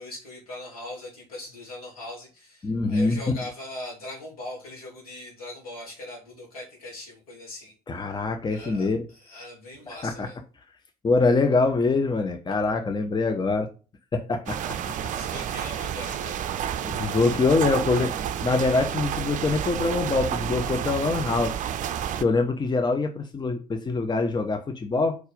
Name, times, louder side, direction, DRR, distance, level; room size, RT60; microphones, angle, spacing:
voice 1, 0.0-7.7 8.1-8.2 8.5-10.4 15.0-16.4, left 1 dB, 75° left, -3 dB, 3.0 m, -40 dB
voice 2, 2.6-3.2 7.9-9.0 10.0-10.3 11.0-13.7 14.1-14.9 16.8-21.6 22.1-25.2, left 3 dB, 25° left, 6 dB, 0.9 m, -24 dB
sound 1, 14.5-22.2, right 9 dB, 45° right, 0.5 m, -30 dB
4.8 x 4.6 x 5.0 m, 0.34 s
figure-of-eight pair, 50°, 19 cm